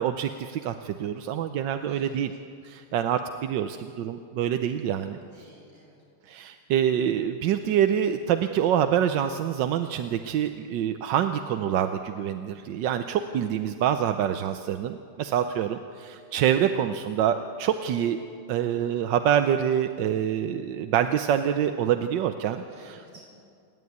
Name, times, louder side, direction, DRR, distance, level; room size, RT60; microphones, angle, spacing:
voice 1, 0.0-2.3 2.6-5.2 6.3-18.2 18.5-23.0, right 9 dB, 65° right, 8 dB, 1.3 m, -26 dB
voice 2, 1.7-2.2 2.9-3.3 5.3-6.0 22.7-23.4, right 1 dB, 45° right, -4 dB, 7.6 m, -52 dB
28.0 x 11.5 x 9.5 m, 2.3 s
omnidirectional pair, 2.3 m